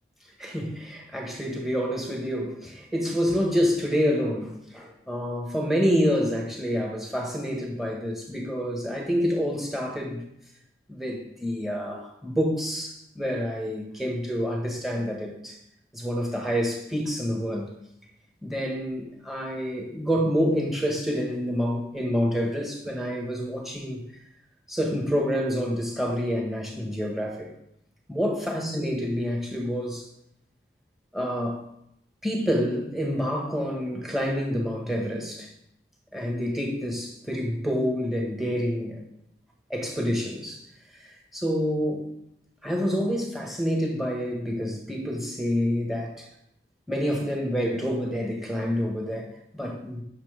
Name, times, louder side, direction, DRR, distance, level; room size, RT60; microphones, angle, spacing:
voice 1, 0.4-10.2 10.9-15.6 15.9-17.7 18.4-24.0 24.7-27.5 28.1-30.0 31.1-31.6 32.2-35.5 36.1-39.0 39.7-40.6 40.9-42.1 42.6-46.3 46.9-50.0, equal, ahead, 1.6 m, -28 dB
9.0 x 6.7 x 5.2 m
head